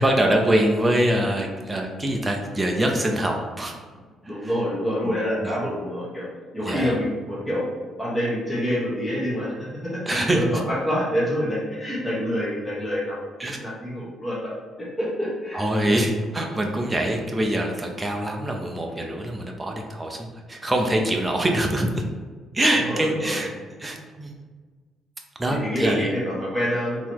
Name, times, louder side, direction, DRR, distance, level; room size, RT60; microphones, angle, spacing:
voice 1, 0.0-3.7 4.2-4.5 5.0-5.5 6.6-6.9 10.1-10.6 13.4-13.6 15.5-21.9 22.5-23.5 23.8-24.3 25.4-26.1, right 1 dB, 10° right, 1 dB, 0.5 m, -24 dB
voice 2, 4.2-6.2 6.5-7.7 8.0-13.2 13.6-14.5 15.0-16.0 22.9-23.4 25.5-27.1, equal, 10° left, -8 dB, 1.3 m, -27 dB
3.8 x 3.0 x 4.6 m, 1.4 s
cardioid pair, 135°, 0 cm